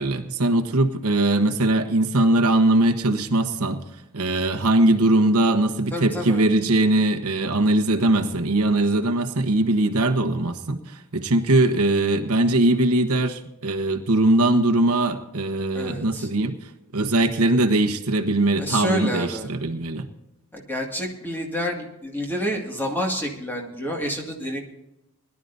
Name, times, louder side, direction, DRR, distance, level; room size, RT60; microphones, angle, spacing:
voice 1, 0.0-3.8 4.1-20.1, right 2 dB, 80° right, 6 dB, 1.2 m, -21 dB
voice 2, 5.9-6.4 15.7-16.3 18.6-19.5 20.5-24.6, equal, 10° left, 1 dB, 2.0 m, -28 dB
21.0 x 12.0 x 2.7 m, 0.90 s
head